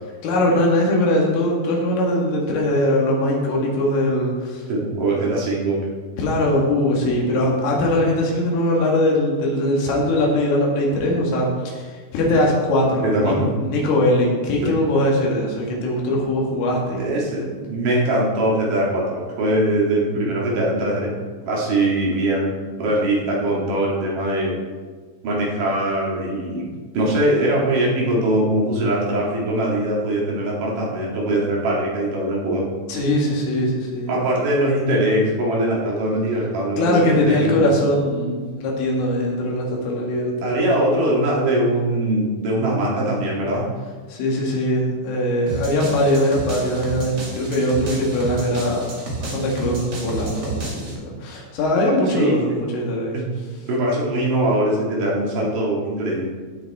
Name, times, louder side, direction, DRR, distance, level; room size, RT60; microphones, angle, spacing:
voice 1, 0.2-4.6 5.0-5.1 6.2-17.5 32.9-34.2 36.8-40.6 44.1-48.9 49.2-53.2, left 1 dB, 80° left, -2 dB, 4.7 m, -21 dB
voice 2, 4.7-5.8 13.0-13.5 14.6-14.7 17.0-21.1 21.5-22.5 22.8-24.6 25.2-26.7 26.9-32.7 34.1-37.7 40.4-43.7 52.1-52.6 53.1-53.3 53.7-56.3, right 1 dB, 50° right, -4 dB, 3.4 m, -21 dB
sound 1, 45.5-50.9, right 2 dB, 65° right, 1.0 m, -31 dB
17.5 x 6.2 x 4.3 m, 1.5 s
omnidirectional pair, 5.6 m